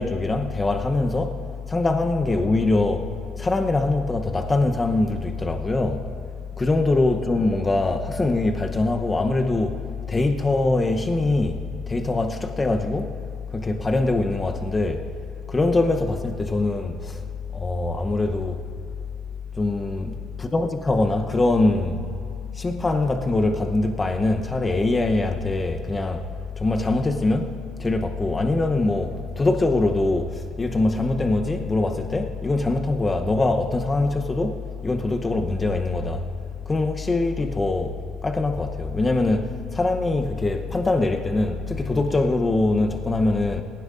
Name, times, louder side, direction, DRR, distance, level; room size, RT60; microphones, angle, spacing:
voice 1, 0.0-1.4 1.7-3.1 3.4-6.0 6.6-11.6 11.9-13.1 13.5-15.1 15.5-17.2 17.5-18.6 19.5-22.0 22.5-26.3 26.6-27.5 27.8-34.6 34.8-36.3 36.7-37.9 38.2-43.6, left 2 dB, 20° left, 0.9 m, -23 dB
18.5 x 16.0 x 2.6 m
supercardioid pair, 90°, 0 cm